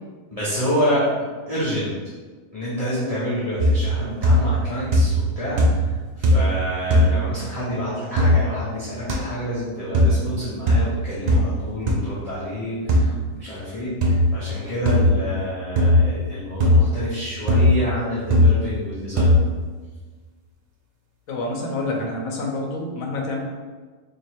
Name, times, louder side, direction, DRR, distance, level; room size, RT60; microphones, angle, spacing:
voice 1, 0.3-1.9 2.5-19.3, equal, 30° left, -9 dB, 0.8 m, -28 dB
sound 1, 3.6-4.0 4.2-4.6 4.9-5.3 5.6-5.9 6.2-6.6 6.9-7.1 8.2-8.3 9.1-9.2 9.9-10.2 10.7-10.8 11.3-11.5 11.9-12.0 12.9-13.1 14.0-14.2 14.8-15.2 15.8-16.0 16.6-16.8 17.5-17.7 18.3-18.5 19.2-19.4, left 1 dB, 60° right, 0.4 m, -17 dB
voice 2, 21.3-23.4, left 2 dB, 85° left, 0 dB, 1.2 m, -27 dB
3.0 x 2.8 x 4.4 m, 1.4 s
omnidirectional pair, 1.4 m